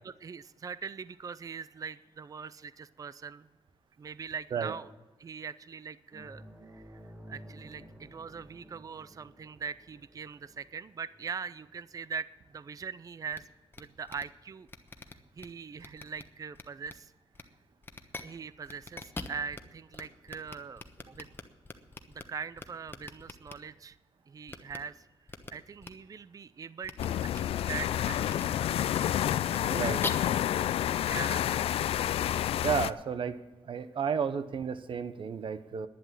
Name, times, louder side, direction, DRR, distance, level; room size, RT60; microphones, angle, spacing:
voice 1, 0.0-3.5 4.0-4.9 5.2-7.0 7.3-13.5 13.8-14.7 15.4-17.1 18.2-21.3 22.1-24.0 24.3-25.1 25.5-28.6 31.0-31.6, right 6 dB, 35° right, 16 dB, 0.5 m, -41 dB
sound 1, 6.1-15.1 15.4-15.6 17.6-17.7, equal, 20° right, 2.5 m, -54 dB
sound 2, 13.3-13.4 13.7-13.8 14.1-14.2 14.7-15.5 15.8-16.2 16.5-16.9 17.3-17.4 17.8-18.2 18.7-19.6 19.9-20.0 20.3-22.2 22.6-23.5 24.5-24.8 25.3-25.5 25.8-25.9 26.8-27.1 27.3-27.4 28.3-28.4 28.9-29.0 29.5-30.1, left 3 dB, 25° left, 1.1 m, -41 dB
sound 3, 27.0-32.9, left 11 dB, 90° left, 0.4 m, -29 dB
voice 2, 29.7-30.0 32.6-33.4 33.7-35.9, right 7 dB, 60° right, 12 dB, 1.0 m, -32 dB
11.0 x 10.0 x 7.5 m, 1.1 s
cardioid pair, 100°, 10 cm